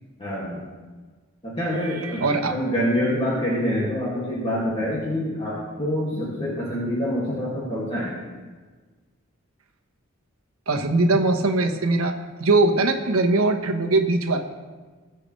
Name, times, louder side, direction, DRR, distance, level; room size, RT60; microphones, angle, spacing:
voice 1, 0.2-0.6 1.4-8.2, equal, 30° left, -8 dB, 2.3 m, -26 dB
voice 2, 1.8-2.5 10.7-12.1 12.4-14.4, right 2 dB, 80° right, 4 dB, 1.2 m, -21 dB
20.5 x 6.9 x 3.3 m, 1.4 s
head